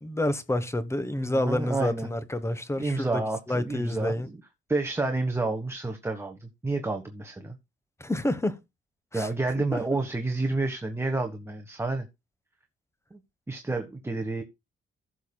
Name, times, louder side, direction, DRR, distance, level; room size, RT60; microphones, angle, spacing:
voice 1, 0.0-3.2 3.5-4.3 8.0-8.6 9.1-9.3 9.7-9.8, left 1 dB, 15° left, 1.1 m, -28 dB
voice 2, 1.2-2.1 2.8-4.4 4.7-7.6 9.1-12.1 13.1-13.2 13.5-14.4, right 2 dB, 10° right, 1.3 m, -29 dB
15.5 x 7.1 x 2.3 m
cardioid pair, 90°, 20 cm